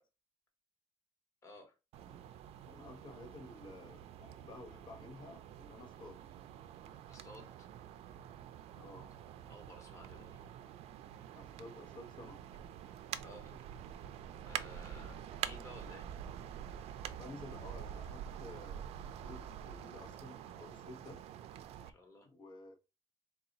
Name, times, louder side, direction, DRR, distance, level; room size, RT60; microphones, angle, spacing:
voice 1, 1.4-1.7 7.1-7.7 9.5-10.4 11.2-11.4 13.2-13.5 14.4-16.1 21.8-22.3, left 2 dB, 30° left, 2 dB, 1.2 m, -55 dB
sound 1, 1.9-21.9, right 10 dB, 90° right, 0.4 m, -47 dB
voice 2, 2.7-6.2 8.8-9.1 11.4-12.4 17.2-21.2 22.2-22.7, left 2 dB, 50° left, 4 dB, 0.8 m, -52 dB
4.0 x 2.3 x 3.8 m, 0.27 s
cardioid pair, 165°, 10 cm